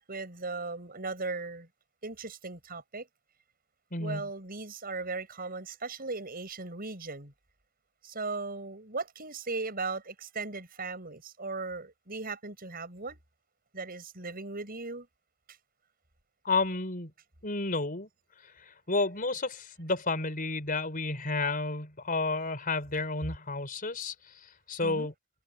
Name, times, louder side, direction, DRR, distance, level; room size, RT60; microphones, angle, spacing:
voice 1, 0.1-1.7 2.0-3.1 4.0-7.3 8.0-13.2 13.7-15.1 24.8-25.1, right 3 dB, 40° right, 6.7 m, -37 dB
voice 2, 3.9-4.3 16.4-17.1 17.4-18.1 18.4-25.1, left 3 dB, 40° left, 4.8 m, -31 dB
head